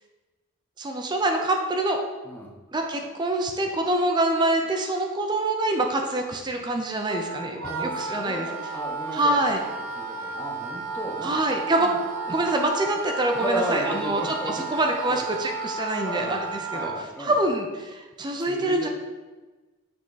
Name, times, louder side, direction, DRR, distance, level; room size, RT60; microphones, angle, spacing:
voice 1, 0.8-2.0 2.7-8.5 9.1-9.6 11.2-11.9 12.3-18.9, right 1 dB, 20° right, 3 dB, 0.4 m, -25 dB
Wind instrument woodwind instrument, 7.1-17.1, right 4 dB, 70° right, 0.6 m, -33 dB
voice 2, 7.6-11.4 11.8-12.0 13.4-15.2 16.0-16.4 16.7-17.3 18.4-18.9, equal, 10° left, -2 dB, 0.8 m, -34 dB
7.4 x 3.6 x 3.9 m, 1.2 s
head